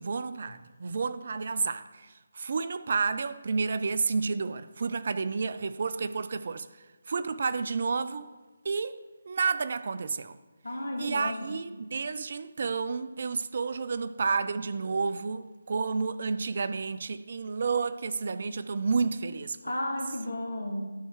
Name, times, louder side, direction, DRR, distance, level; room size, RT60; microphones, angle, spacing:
voice 1, 0.0-6.7 7.1-8.3 8.6-9.0 9.3-10.4 11.0-19.6, right 4 dB, 50° right, 0.4 m, -30 dB
voice 2, 10.6-11.6 19.6-20.8, left 1 dB, 75° left, 1.8 m, -33 dB
12.5 x 4.4 x 4.7 m
figure-of-eight pair, 155°, 0 cm